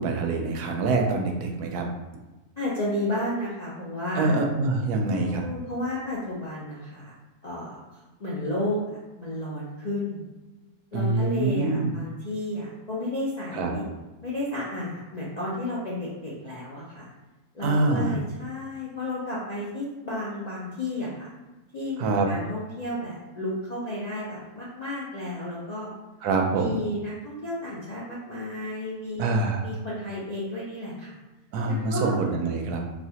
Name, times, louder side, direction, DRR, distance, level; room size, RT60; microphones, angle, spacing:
voice 1, 0.0-1.9 4.2-5.4 10.9-11.9 13.5-13.7 17.6-18.1 22.0-22.3 26.2-26.8 29.2-29.6 31.5-32.8, right 3 dB, 80° right, 2 dB, 1.1 m, -25 dB
voice 2, 2.6-4.4 5.1-7.1 7.4-10.2 10.9-13.8 14.2-17.1 17.5-21.3 21.7-25.9 26.5-29.3 29.6-31.2 31.7-32.2, left 1 dB, 50° left, -8 dB, 0.5 m, -32 dB
4.1 x 2.4 x 2.8 m, 1.1 s
omnidirectional pair, 1.7 m